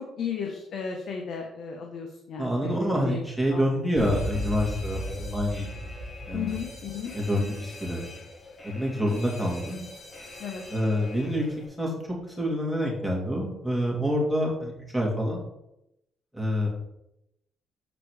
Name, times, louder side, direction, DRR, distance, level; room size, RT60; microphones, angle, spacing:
voice 1, 0.2-3.2 3.5-3.6 4.0-4.1 6.3-7.1 10.4-10.6, left 6 dB, 65° left, 2 dB, 1.1 m, -34 dB
voice 2, 2.4-5.9 6.3-6.6 7.1-8.0 8.6-9.8 10.7-11.4 11.8-11.9 12.4-15.4 16.3-16.7, equal, ahead, -2 dB, 2.9 m, -27 dB
Alarm, 4.0-11.7, equal, 35° left, 2.6 m, -38 dB
7.5 x 4.7 x 4.9 m, 0.82 s
cardioid pair, 90°, 0 cm